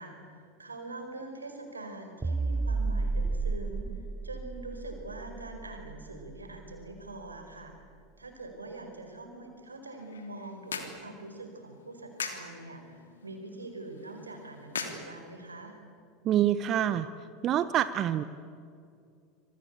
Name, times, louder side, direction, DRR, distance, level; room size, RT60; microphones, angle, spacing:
voice 1, 0.0-7.7 8.2-15.8, right 2 dB, 90° right, 4 dB, 4.9 m, -44 dB
sound 1, 2.2-6.7, right 3 dB, 15° right, 0.6 m, -32 dB
sound 2, 9.8-15.8, left 5 dB, 80° left, 3.1 m, -43 dB
voice 2, 16.2-17.1 17.4-18.2, right 11 dB, 40° right, 13 dB, 1.0 m, -26 dB
27.0 x 25.5 x 8.4 m, 2.3 s
figure-of-eight pair, 80°, 0 cm